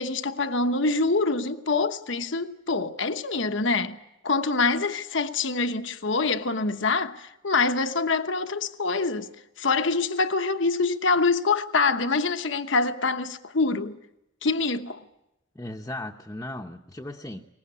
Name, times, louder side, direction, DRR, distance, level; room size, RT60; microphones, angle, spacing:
voice 1, 0.0-9.3 9.6-14.0 14.4-15.0, left 3 dB, 70° left, 1.1 m, -25 dB
voice 2, 15.5-17.5, left 1 dB, 15° left, 0.8 m, -37 dB
22.5 x 20.0 x 9.8 m
head